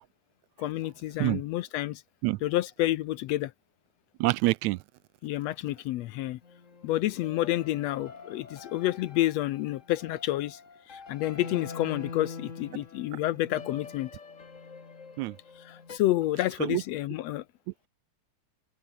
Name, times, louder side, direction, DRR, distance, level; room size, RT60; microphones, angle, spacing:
voice 1, 0.6-2.0 2.4-3.5 5.2-6.4 6.8-10.6 10.9-14.1 15.6-17.4, left 15 dB, 75° left, 1.7 m, -29 dB
voice 2, 4.2-4.8 15.2-15.4 16.6-16.8, right 20 dB, 80° right, 1.8 m, -26 dB
sound 1, 6.4-16.0, left 5 dB, 30° left, 1.9 m, -45 dB
open air
omnidirectional pair, 3.4 m